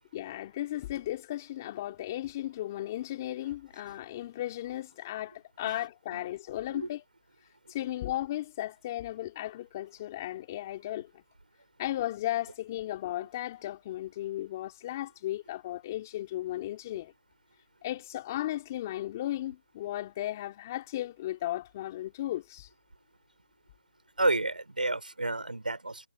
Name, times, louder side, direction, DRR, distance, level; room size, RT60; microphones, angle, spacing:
voice 1, 0.1-7.0 7.7-11.1 11.8-17.1 17.8-22.7, left 14 dB, 20° left, 2.4 m, -35 dB
voice 2, 24.2-26.1, right 2 dB, 85° right, 3.8 m, -30 dB
figure-of-eight pair, 165°, 5 cm